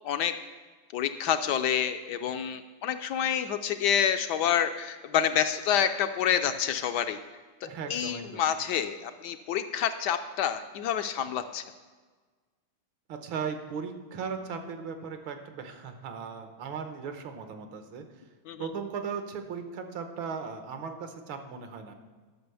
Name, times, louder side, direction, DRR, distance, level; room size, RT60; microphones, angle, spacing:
voice 1, 0.9-7.2 7.9-11.6 18.5-18.7, left 9 dB, 75° left, 9 dB, 1.0 m, -28 dB
voice 2, 7.6-8.4 13.1-18.0 18.6-21.9, right 6 dB, 80° right, 7 dB, 1.7 m, -37 dB
11.0 x 6.2 x 6.8 m, 1.4 s
omnidirectional pair, 2.2 m